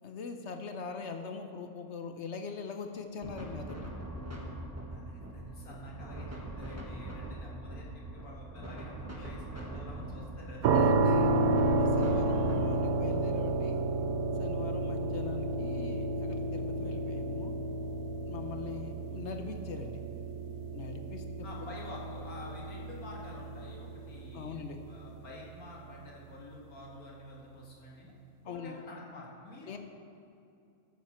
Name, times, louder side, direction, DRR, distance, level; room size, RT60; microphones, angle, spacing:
voice 1, 0.0-3.8 10.7-11.4 11.7-13.8 14.4-17.6 18.2-20.0 20.7-21.5 24.3-24.8 28.4-28.8 29.7-29.8, left 5 dB, 55° left, 6 dB, 0.9 m, -42 dB
sound 1, 3.2-12.6, right 1 dB, 10° right, 1.2 m, -42 dB
voice 2, 4.9-10.6 21.4-24.6 24.9-28.1 28.4-29.8, left 2 dB, 75° left, -3 dB, 2.4 m, -48 dB
sound 2, 10.6-25.5, right 2 dB, 80° right, 1.2 m, -31 dB
13.0 x 9.2 x 4.3 m, 2.6 s
omnidirectional pair, 1.6 m